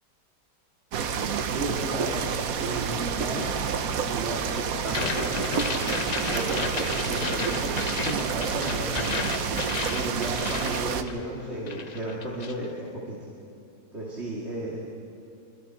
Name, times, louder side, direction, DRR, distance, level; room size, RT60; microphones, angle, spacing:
sound 1, 0.9-11.0, right 6 dB, 60° right, 1.2 m, -29 dB
voice 1, 1.0-2.2 2.6-3.5 4.1-5.7 6.2-9.1 9.9-13.2 13.9-14.8, right 1 dB, 40° right, -5 dB, 2.6 m, -34 dB
sound 2, 4.9-11.4 11.7-12.7, left 5 dB, 55° left, 0.4 m, -33 dB
25.0 x 24.5 x 4.5 m, 2.6 s
omnidirectional pair, 1.8 m